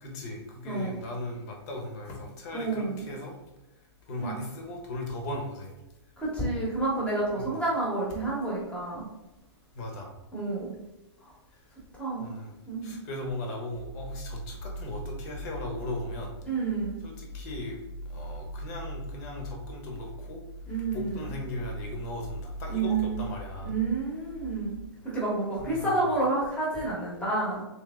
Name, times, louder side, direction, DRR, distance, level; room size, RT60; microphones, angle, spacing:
voice 1, 0.0-3.4 4.1-5.7 7.3-7.6 9.7-10.1 11.5-11.6 12.2-12.5 12.8-16.3 17.0-17.8 18.1-20.4 20.7-23.8 25.6-26.1, left 1 dB, 35° left, 1 dB, 1.1 m, -38 dB
voice 2, 0.6-1.0 2.5-3.0 4.2-4.3 6.2-9.1 10.3-10.7 11.2-11.3 11.9-12.3 12.7-12.9 16.4-17.0 20.7-21.3 22.7-23.2 23.6-24.8 25.0-27.6, right 3 dB, 5° left, -4 dB, 1.1 m, -29 dB
sound 1, 13.7-24.9, equal, 60° left, 1.2 m, -41 dB
3.4 x 3.1 x 3.6 m, 1.0 s
hypercardioid pair, 150°, 15 cm